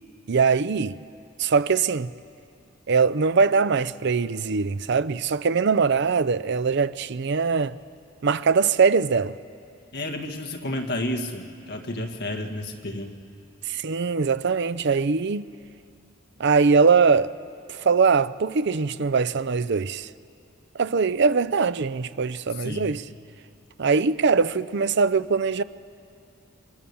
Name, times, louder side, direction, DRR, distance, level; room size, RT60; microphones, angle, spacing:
voice 1, 0.3-1.0 1.4-2.1 2.9-7.8 8.2-9.3 13.7-15.5 16.4-17.3 17.7-20.1 20.7-23.0 23.8-25.6, right 5 dB, 55° right, 0.5 m, -22 dB
voice 2, 9.9-13.1 22.6-23.0, left 1 dB, 50° left, 1.8 m, -31 dB
28.0 x 24.0 x 7.1 m
head